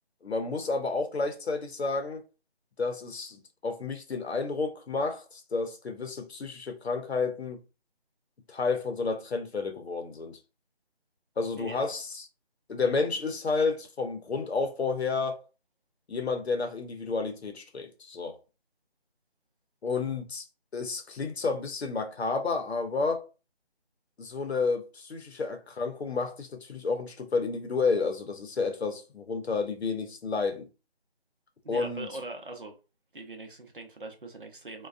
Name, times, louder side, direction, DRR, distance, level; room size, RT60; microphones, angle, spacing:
voice 1, 0.2-2.2 2.8-7.6 8.5-10.4 11.4-12.3 12.7-15.4 16.1-18.4 19.8-20.5 20.7-23.3 24.2-30.7 31.7-32.1, left 4 dB, 75° left, 0.7 m, -31 dB
voice 2, 11.5-11.9 31.6-32.7 33.1-34.9, right 2 dB, 55° right, 0.6 m, -41 dB
2.4 x 2.2 x 2.3 m
figure-of-eight pair, 175°, 32 cm